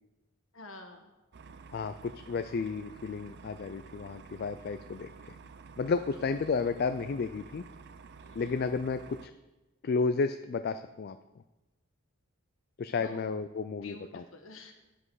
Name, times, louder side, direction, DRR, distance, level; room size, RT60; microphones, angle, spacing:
voice 1, 0.5-1.1 6.1-6.3 8.2-8.6 13.0-13.3 13.8-14.7, left 2 dB, 60° left, 4 dB, 1.3 m, -49 dB
sound 1, 1.3-9.3, right 5 dB, 50° right, 0.4 m, -50 dB
voice 2, 1.7-5.4 5.8-7.6 8.3-9.3 9.8-11.2 12.8-14.2, left 4 dB, 45° left, 10 dB, 0.3 m, -32 dB
10.5 x 7.6 x 4.8 m, 1.1 s
head